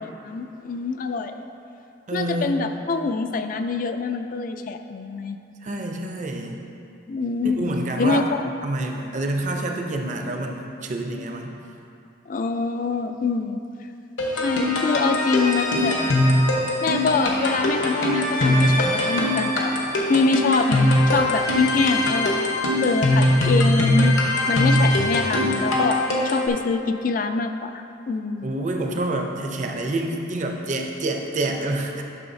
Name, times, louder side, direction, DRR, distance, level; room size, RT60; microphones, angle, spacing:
voice 1, 0.0-1.3 2.1-5.4 7.1-7.6 8.0-8.5 12.3-13.6 14.4-16.0 16.8-19.7 20.1-22.3 22.8-24.2 24.5-28.6, left 4 dB, 45° left, 7 dB, 0.3 m, -25 dB
voice 2, 2.1-2.6 5.6-6.6 7.4-8.2 8.6-11.6 28.4-32.0, right 2 dB, 40° right, 2 dB, 0.6 m, -27 dB
sound 1, 14.2-26.5, left 1 dB, 75° left, 1.1 m, -21 dB
11.0 x 6.3 x 2.7 m, 2.7 s
head